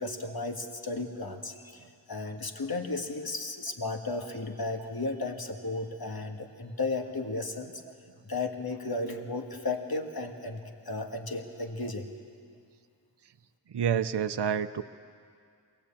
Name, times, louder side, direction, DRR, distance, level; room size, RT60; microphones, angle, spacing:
voice 1, 0.0-7.7 8.2-12.1, left 3 dB, 55° left, 4 dB, 1.8 m, -34 dB
voice 2, 13.7-14.8, right 8 dB, 65° right, 10 dB, 0.7 m, -30 dB
23.0 x 17.0 x 8.6 m, 2.3 s
wide cardioid pair, 55°, 44 cm